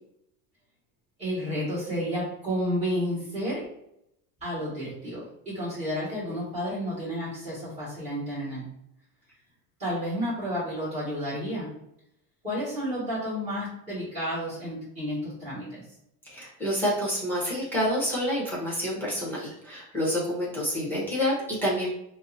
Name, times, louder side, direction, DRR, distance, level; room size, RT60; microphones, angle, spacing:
voice 1, 1.2-3.7 4.4-8.6 9.8-11.7 12.4-15.8, equal, 15° right, -11 dB, 1.5 m, -31 dB
voice 2, 16.2-21.9, equal, 5° left, -6 dB, 0.6 m, -28 dB
5.0 x 2.0 x 2.6 m, 0.78 s
cardioid pair, 160°, 44 cm